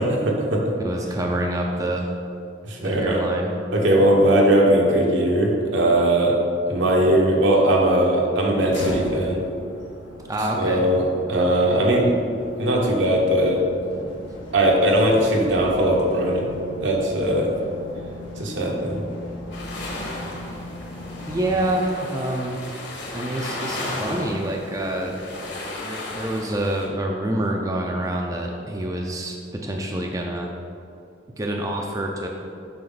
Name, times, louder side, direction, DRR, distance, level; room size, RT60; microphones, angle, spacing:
voice 1, 0.0-0.6 2.7-3.2 3.7-6.4 6.7-9.4 10.5-12.1 12.6-13.6 14.5-17.5 18.4-19.0, right 1 dB, 75° right, -1 dB, 1.2 m, -19 dB
voice 2, 0.8-2.1 2.8-3.5 10.3-10.8 21.3-22.6 23.1-30.5 31.4-32.3, right 1 dB, 20° right, 0 dB, 0.5 m, -27 dB
sound 1, 8.7-21.7, left 1 dB, 80° left, 1.4 m, -38 dB
sound 2, 19.5-26.9, left 1 dB, 60° left, 1.6 m, -34 dB
7.6 x 6.1 x 4.0 m, 2.6 s
head